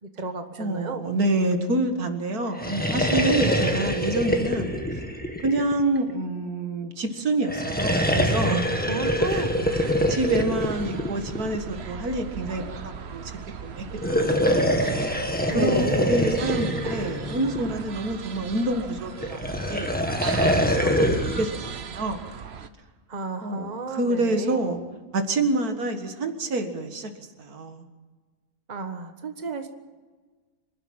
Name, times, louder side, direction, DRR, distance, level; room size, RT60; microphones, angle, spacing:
voice 1, 0.0-1.1 3.5-4.0 8.9-9.5 15.5-16.1 23.1-24.6 28.7-29.7, right 3 dB, 30° right, 7 dB, 1.5 m, -33 dB
voice 2, 0.6-4.7 5.4-8.7 9.3-9.4 9.7-13.2 13.6-13.8 14.2-14.7 15.5-22.2 23.4-24.8 25.1-27.1 27.4-27.9, right 2 dB, 90° right, 6 dB, 2.3 m, -27 dB
sound 1, 2.5-6.1 7.4-11.7 13.9-17.9 19.2-21.5, equal, 5° left, 1.7 m, -25 dB
sound 2, 9.0-22.7, right 6 dB, 50° right, 1.1 m, -38 dB
26.0 x 12.0 x 8.8 m, 1.4 s
omnidirectional pair, 1.5 m